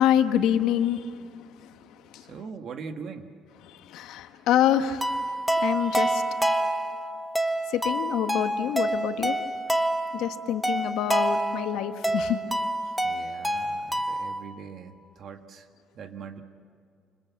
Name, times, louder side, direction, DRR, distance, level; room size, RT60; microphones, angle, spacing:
voice 1, 0.0-2.3 3.6-6.2 7.7-9.4 10.1-12.4, left 10 dB, 75° left, 8 dB, 1.3 m, -27 dB
voice 2, 2.2-3.3 13.0-15.7 15.9-16.4, right 6 dB, 45° right, 6 dB, 1.7 m, -41 dB
sound 1, 5.0-14.4, right 1 dB, ahead, 1.3 m, -27 dB
28.0 x 27.0 x 7.4 m, 2.3 s
cardioid pair, 155°, 0 cm